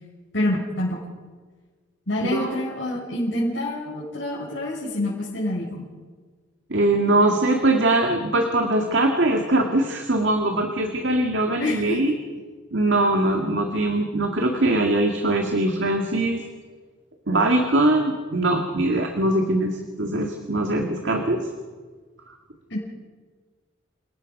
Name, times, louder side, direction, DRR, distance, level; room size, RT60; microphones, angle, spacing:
voice 1, 0.3-1.0 2.1-5.9 11.6-12.0 22.7-22.8, left 1 dB, 65° left, -7 dB, 4.9 m, -26 dB
voice 2, 6.7-12.1 12.7-16.4 17.3-21.5 22.3-22.4, right 1 dB, 65° right, 3 dB, 2.1 m, -22 dB
28.5 x 19.0 x 5.4 m, 1.5 s
head